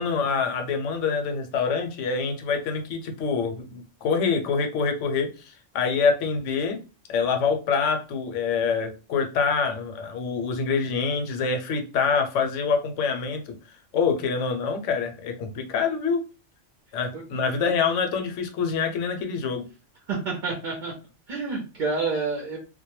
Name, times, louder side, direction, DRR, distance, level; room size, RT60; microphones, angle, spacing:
voice 1, 0.0-6.8 7.1-13.6 13.9-16.2 16.9-19.7, left 5 dB, 80° left, 5 dB, 0.9 m, -26 dB
voice 2, 20.1-20.9 21.3-22.6, right 4 dB, 55° right, -1 dB, 0.6 m, -28 dB
2.2 x 2.1 x 2.9 m, 0.32 s
omnidirectional pair, 1.3 m